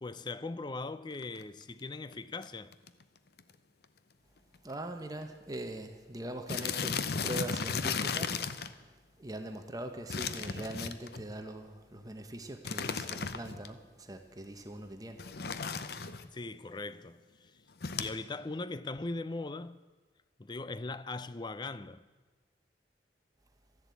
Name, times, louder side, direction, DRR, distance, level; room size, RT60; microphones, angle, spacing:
voice 1, 0.0-2.7 16.3-17.5 18.0-19.8 20.4-22.0, left 3 dB, 25° left, 0.5 m, -39 dB
sound 1, 1.1-1.4 2.1-2.2 2.4-2.5 2.7-3.0 3.4-3.5 3.8-3.9 4.7-4.8 5.0-5.2 5.5-5.6 6.5-8.7 10.1-11.3 12.6-13.7 15.2-16.3 17.8-18.1, left 5 dB, 60° left, 0.7 m, -35 dB
voice 2, 4.6-8.4 8.8-15.2, right 1 dB, 20° right, 1.0 m, -42 dB
13.5 x 11.5 x 8.3 m
head